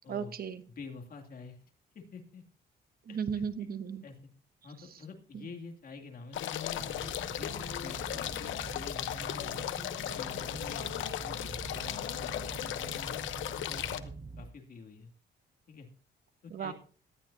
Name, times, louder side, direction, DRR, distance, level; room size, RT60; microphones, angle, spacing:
voice 1, 0.1-0.6 3.0-4.0 5.3-5.5 16.5-16.7, right 7 dB, 50° right, 12 dB, 1.1 m, -35 dB
voice 2, 0.7-1.6 1.9-2.4 3.1-3.2 4.0-4.2 4.6-9.7 10.1-10.9 11.2-13.1 13.7-15.1 15.7-15.9 16.4-16.7, left 4 dB, 50° left, 2 dB, 2.5 m, -47 dB
sound 1, 6.3-14.0, left 11 dB, 85° left, 0.9 m, -36 dB
sound 2, 6.8-14.5, right 4 dB, 25° right, 0.5 m, -45 dB
18.5 x 12.5 x 2.7 m, 0.39 s
cardioid pair, 120°, 19 cm